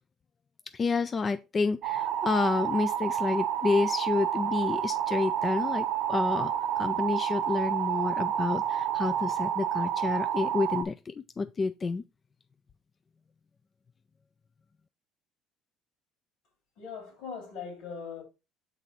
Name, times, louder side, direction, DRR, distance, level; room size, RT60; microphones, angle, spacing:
voice 1, 0.7-12.0, left 4 dB, 30° left, 0.3 m, -29 dB
sound 1, 1.8-10.8, right 10 dB, 70° right, 0.6 m, -29 dB
voice 2, 16.8-18.2, left 6 dB, 80° left, 2.7 m, -40 dB
6.2 x 3.9 x 4.1 m
cardioid pair, 115°, 0 cm